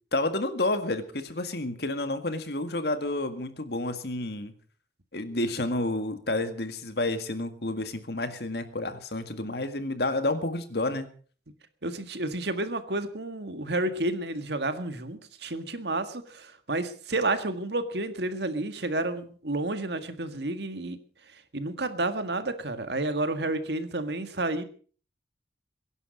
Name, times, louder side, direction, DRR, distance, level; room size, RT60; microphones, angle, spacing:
voice 1, 0.1-4.5 5.1-11.1, left 2 dB, 60° left, 9 dB, 1.9 m, -30 dB
voice 2, 11.8-21.0 21.3-24.6, right 2 dB, 70° right, 9 dB, 1.8 m, -30 dB
22.5 x 11.0 x 5.3 m, 0.43 s
head